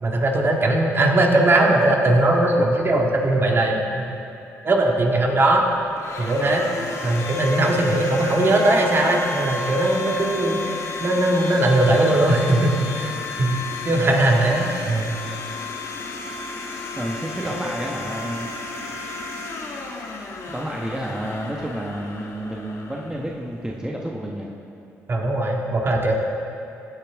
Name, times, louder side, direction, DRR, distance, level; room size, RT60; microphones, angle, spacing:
voice 1, 0.0-4.2 4.6-5.6 6.2-6.7 7.0-13.6 13.9-15.1 17.4-17.5 25.1-26.1, right 1 dB, 40° right, 0 dB, 1.9 m, -19 dB
Domestic sounds home sounds, 5.0-23.8, left 3 dB, 55° left, 1.5 m, -33 dB
voice 2, 17.0-18.5 20.5-24.5, right 1 dB, 10° right, -2 dB, 1.1 m, -30 dB
16.0 x 8.8 x 3.6 m, 2.7 s
supercardioid pair, 60°, 6 cm